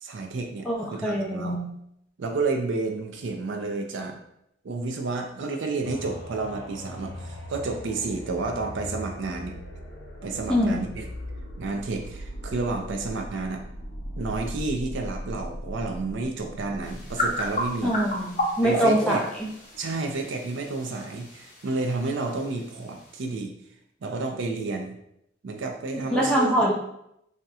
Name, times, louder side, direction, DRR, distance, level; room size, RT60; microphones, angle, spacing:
voice 1, 0.0-1.6 2.2-4.2 4.6-9.5 10.2-11.1 11.6-13.6 14.2-17.9 18.6-19.2 19.8-23.5 24.0-25.0 25.4-26.7, right 3 dB, 70° right, 3 dB, 0.4 m, -30 dB
voice 2, 0.6-1.7 10.5-10.8 17.8-19.5 26.1-26.7, equal, 5° left, -4 dB, 0.5 m, -24 dB
sound 1, 5.8-19.5 20.0-20.1, equal, 85° left, 0.7 m, -39 dB
sound 2, 16.8-23.3, equal, 35° left, 0.7 m, -33 dB
2.8 x 2.1 x 3.5 m, 0.77 s
head